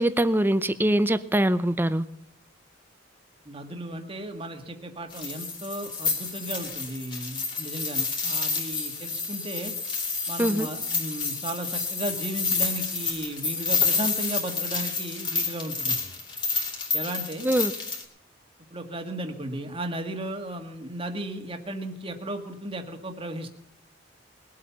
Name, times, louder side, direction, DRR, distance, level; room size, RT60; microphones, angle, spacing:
voice 1, 0.0-2.0 10.4-10.7 17.4-17.7, right 1 dB, 10° right, 0.6 m, -23 dB
voice 2, 3.4-9.7 10.3-16.1 16.9-17.5 18.7-23.5, right 1 dB, 30° right, 1.7 m, -35 dB
sound 1, 5.1-18.0, left 4 dB, 25° left, 2.8 m, -29 dB
21.0 x 8.5 x 5.8 m
head